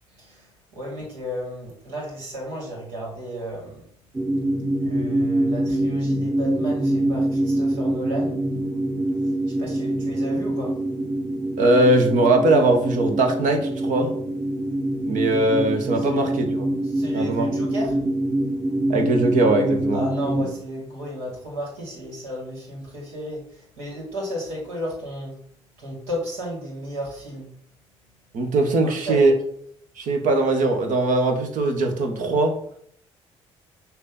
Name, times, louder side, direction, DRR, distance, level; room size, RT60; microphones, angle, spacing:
voice 1, 0.1-3.9 4.8-8.4 9.2-10.8 15.9-16.3 16.8-18.0 19.9-25.3 25.8-27.5 28.8-29.3, equal, 80° right, -2 dB, 2.3 m, -33 dB
sound 1, 4.1-20.5, right 1 dB, 20° right, 0.9 m, -25 dB
voice 2, 11.6-14.1 15.1-16.7 17.1-17.5 18.9-20.0 28.3-29.3 30.0-32.5, right 2 dB, 60° right, 3 dB, 1.2 m, -20 dB
6.3 x 2.9 x 5.4 m, 0.66 s
hypercardioid pair, 45°, 15 cm